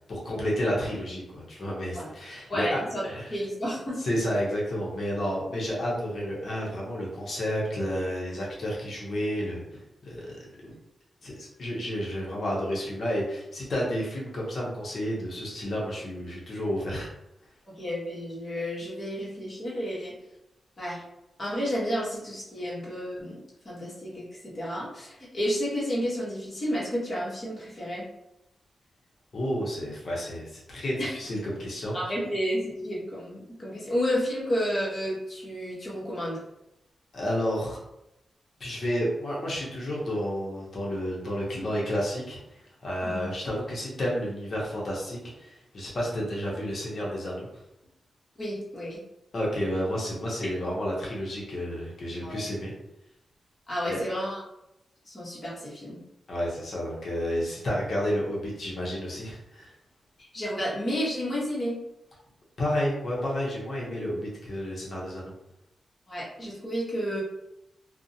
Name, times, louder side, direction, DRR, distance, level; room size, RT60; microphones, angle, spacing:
voice 1, 0.1-3.3 4.0-9.6 10.0-10.7 11.2-17.1 29.3-32.0 37.1-37.8 38.6-42.4 42.8-47.5 49.3-52.7 53.8-54.0 56.3-59.7 62.6-65.3, equal, 55° left, -4 dB, 0.8 m, -31 dB
voice 2, 2.5-3.0 3.3-4.0 17.7-20.1 20.8-21.0 21.4-28.0 31.0-31.1 31.9-36.4 43.0-43.2 48.4-49.0 52.2-52.4 53.7-54.4 55.0-56.0 60.2-61.8 66.1-67.2, equal, 35° left, -6 dB, 1.0 m, -31 dB
2.5 x 2.1 x 2.7 m, 0.87 s
wide cardioid pair, 120°, 0 cm